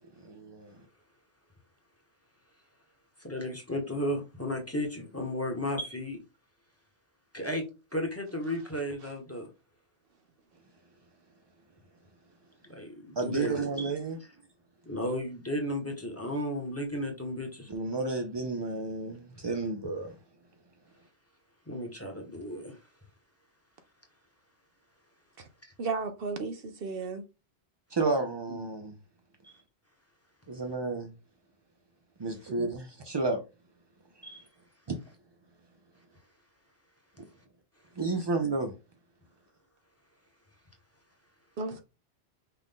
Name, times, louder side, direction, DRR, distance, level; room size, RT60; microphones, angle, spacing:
voice 1, 0.2-0.8 13.2-14.2 17.7-20.2 27.9-29.0 30.5-31.1 32.2-33.4 34.9-35.0 38.0-38.7, right 3 dB, 45° right, 0.3 m, -31 dB
voice 2, 3.2-6.2 7.3-7.6 7.9-9.5 12.6-13.9 14.2-14.3 14.8-17.7 21.7-22.8 29.4-29.5 34.2-34.4, left 1 dB, 15° left, 1.0 m, -34 dB
voice 3, 25.8-27.3 32.6-32.7 41.6-41.8, right 4 dB, 60° right, 0.7 m, -34 dB
5.5 x 2.5 x 3.6 m
omnidirectional pair, 1.1 m